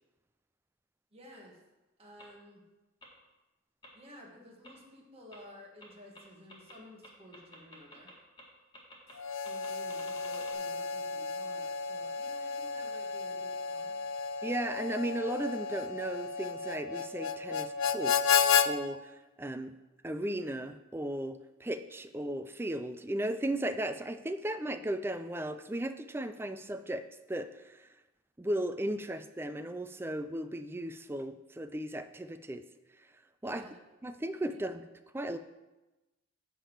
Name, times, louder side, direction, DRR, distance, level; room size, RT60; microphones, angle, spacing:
voice 1, 1.1-1.6 2.0-2.6 3.9-8.1 9.4-14.0 33.4-33.8 34.5-34.6, equal, 30° right, -1 dB, 1.5 m, -53 dB
sound 1, 2.2-2.3 3.0-3.1 3.8-3.9 4.6-4.7 5.3-5.4 5.8-5.9 6.1-6.2 6.5-6.7 7.0-8.1 8.4-8.5 8.7-9.1 9.4-10.5, left 1 dB, 20° left, 1.6 m, -51 dB
Harmonica, 9.2-18.7, left 6 dB, 65° left, 0.4 m, -32 dB
voice 2, 14.4-19.7 20.0-27.9 28.4-32.7 33.4-33.7 34.0-34.9 35.1-35.4, right 1 dB, 10° right, 10 dB, 0.3 m, -36 dB
10.0 x 3.6 x 7.2 m, 1.1 s
head